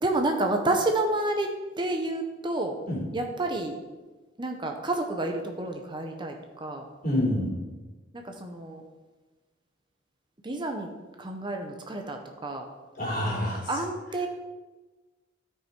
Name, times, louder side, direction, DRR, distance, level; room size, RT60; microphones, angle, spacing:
voice 1, 0.0-2.7 3.1-3.8 4.4-6.8 8.1-8.8 10.4-10.9 11.2-12.7 13.7-14.3, right 2 dB, 25° right, 4 dB, 0.8 m, -29 dB
voice 2, 7.0-7.5 13.0-13.7, left 1 dB, 50° left, -3 dB, 3.6 m, -27 dB
13.5 x 5.6 x 4.5 m, 1.2 s
head